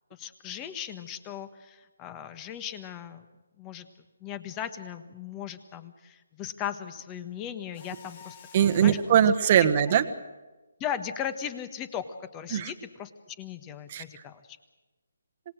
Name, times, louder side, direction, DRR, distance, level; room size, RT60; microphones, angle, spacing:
voice 1, 0.1-3.3 3.6-3.9 4.2-8.4 8.7-9.0 10.8-14.4, left 9 dB, 20° left, 11 dB, 1.4 m, -37 dB
Mechanisms, 7.7-9.2, left 7 dB, 40° left, 2.1 m, -50 dB
voice 2, 8.5-10.0 12.5-12.7 13.9-14.2, right 9 dB, 35° right, 9 dB, 1.4 m, -21 dB
26.5 x 19.5 x 6.5 m, 1.2 s
figure-of-eight pair, 150°, 0 cm